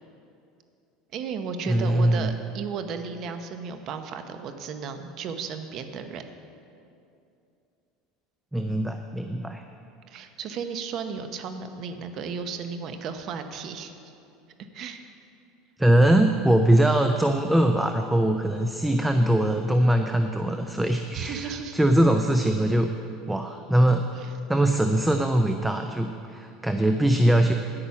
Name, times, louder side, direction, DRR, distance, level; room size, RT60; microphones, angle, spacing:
voice 1, 1.1-6.2 10.1-13.9 14.7-15.1 21.1-21.8 24.2-24.3, right 6 dB, 45° right, 8 dB, 0.8 m, -34 dB
voice 2, 1.7-2.3 8.5-9.6 15.8-22.9 23.3-24.1 24.5-27.5, right 1 dB, 5° right, 6 dB, 0.4 m, -22 dB
9.9 x 8.7 x 5.8 m, 2.6 s
supercardioid pair, 145°, 0 cm